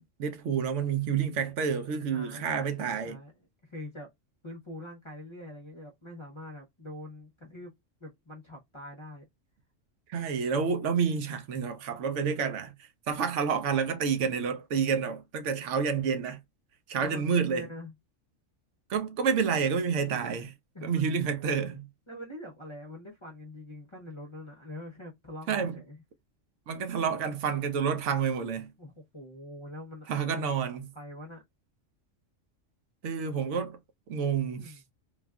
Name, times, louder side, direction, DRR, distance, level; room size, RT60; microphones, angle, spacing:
voice 1, 0.0-3.2 10.1-12.7 13.1-16.4 16.9-17.7 18.9-20.5 20.8-21.9 25.5-25.8 26.7-28.7 30.1-30.9 33.0-33.8 34.1-34.7, right 6 dB, 70° right, 0.9 m, -29 dB
voice 2, 2.1-3.3 3.6-4.1 4.4-7.7 8.0-9.3 14.8-14.9 17.0-17.9 20.7-21.4 22.1-26.0 28.8-30.5 30.9-31.4 33.0-33.2 34.6-34.8, left 1 dB, 30° left, 0.6 m, -44 dB
3.3 x 2.4 x 2.2 m
omnidirectional pair, 1.3 m